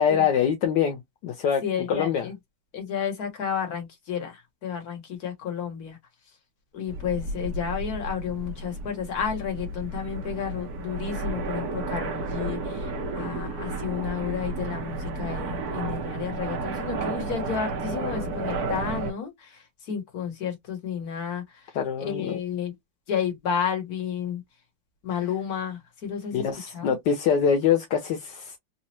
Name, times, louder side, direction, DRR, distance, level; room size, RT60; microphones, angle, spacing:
voice 1, 0.0-1.6 1.9-2.3 21.7-22.4 26.3-28.6, left 7 dB, 65° left, 1.2 m, -24 dB
voice 2, 1.6-2.3 2.7-6.0 6.7-22.7 23.1-24.4 25.0-27.0, left 7 dB, 45° left, 1.7 m, -32 dB
sound 1, 6.9-19.1, right 3 dB, 55° right, 1.2 m, -32 dB
4.2 x 2.4 x 2.9 m
omnidirectional pair, 2.4 m